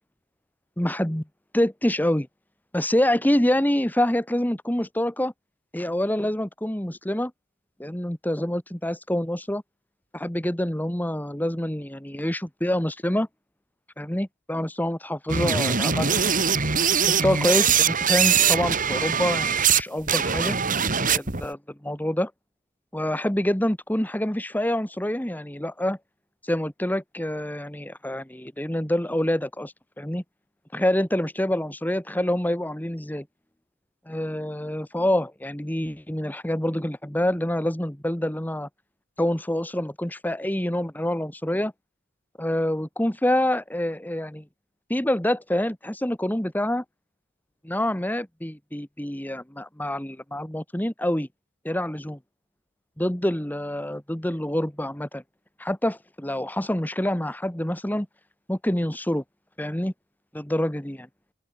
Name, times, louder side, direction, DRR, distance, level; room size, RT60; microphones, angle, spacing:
voice 1, 0.8-1.2 1.5-2.3 2.7-5.3 5.7-7.3 7.8-9.6 10.1-13.3 14.0-16.2 17.0-20.6 21.1-22.3 22.9-26.0 26.4-30.2 30.7-33.2 34.1-38.7 39.2-41.7 42.4-44.4 44.9-46.8 47.6-51.3 51.6-52.2 53.0-55.2 55.6-58.1 58.5-59.2 59.6-59.9 60.3-61.1, left 1 dB, 10° left, 1.5 m, -26 dB
sound 1, 15.3-19.8 20.1-21.5, right 7 dB, 40° right, 2.8 m, -22 dB
open air
head